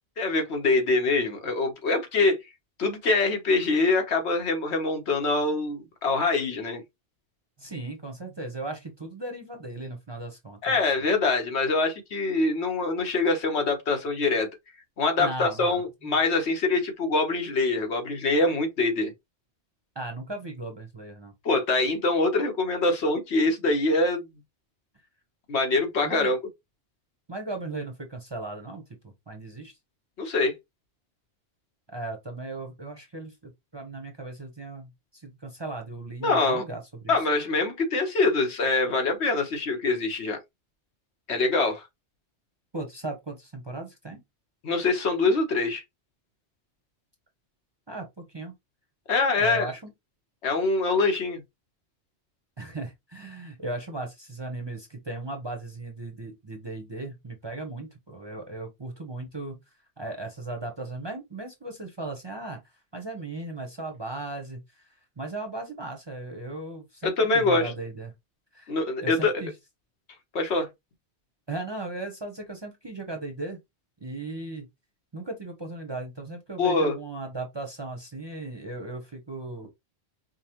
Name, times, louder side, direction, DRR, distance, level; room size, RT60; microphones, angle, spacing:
voice 1, 0.2-2.4 2.8-6.8 10.6-14.5 15.0-19.1 21.4-24.2 25.5-26.4 30.2-30.5 36.2-36.6 37.1-40.4 41.3-41.8 44.6-45.8 49.1-49.7 50.4-51.4 67.0-67.7 68.7-69.4 70.3-70.7 76.6-77.0, left 3 dB, 75° left, 1.3 m, -24 dB
voice 2, 7.6-10.8 15.2-15.8 20.0-21.3 26.0-26.3 27.3-29.8 31.9-37.1 42.7-44.2 47.9-48.5 49.4-49.9 52.6-59.6 60.0-62.6 62.9-68.1 68.5-68.7 69.0-69.5 71.5-73.6 74.0-74.7 75.1-79.7, right 2 dB, 30° right, 0.6 m, -37 dB
5.2 x 2.0 x 2.9 m
omnidirectional pair, 1.1 m